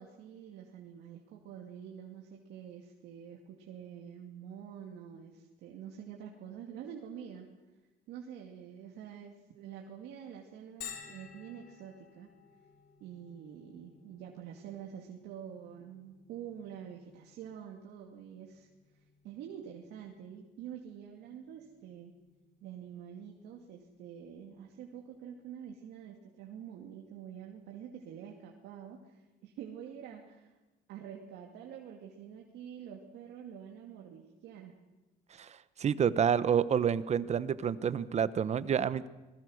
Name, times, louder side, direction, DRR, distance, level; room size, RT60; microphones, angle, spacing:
voice 1, 0.0-7.5 8.1-12.3 13.0-18.7 19.2-22.1 22.6-30.6 30.9-34.7, right 8 dB, 80° right, 0 dB, 2.5 m, -47 dB
Bell, 10.8-26.2, left 8 dB, 70° left, 3.6 m, -56 dB
voice 2, 35.4-39.1, right 8 dB, 40° right, 15 dB, 1.0 m, -29 dB
26.0 x 20.5 x 6.5 m, 1.1 s
cardioid pair, 110°, 17 cm